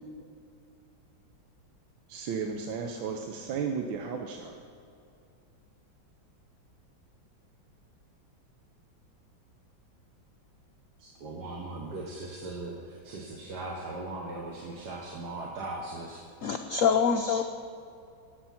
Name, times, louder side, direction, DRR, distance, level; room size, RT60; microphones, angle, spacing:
voice 1, 2.1-4.6, right 6 dB, 85° right, 3 dB, 1.6 m, -34 dB
voice 2, 11.0-16.2, right 2 dB, 60° right, -1 dB, 1.8 m, -39 dB
voice 3, 16.4-17.4, left 6 dB, 85° left, 6 dB, 0.7 m, -25 dB
18.5 x 7.5 x 5.8 m, 2.5 s
omnidirectional pair, 2.1 m